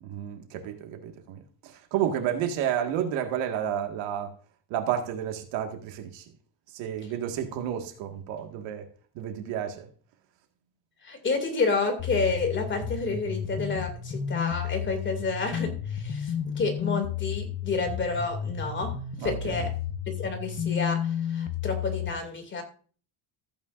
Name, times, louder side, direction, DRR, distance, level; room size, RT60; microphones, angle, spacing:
voice 1, 0.0-4.3 4.7-6.3 6.7-8.8 9.2-9.9 19.2-19.7, right 9 dB, 80° right, 1.9 m, -31 dB
voice 2, 11.0-18.9 19.2-19.7 20.1-22.6, left 4 dB, 25° left, 2.5 m, -30 dB
sound 1, 12.0-22.1, left 8 dB, 50° left, 1.3 m, -32 dB
14.5 x 8.8 x 2.5 m
cardioid pair, 145°, 43 cm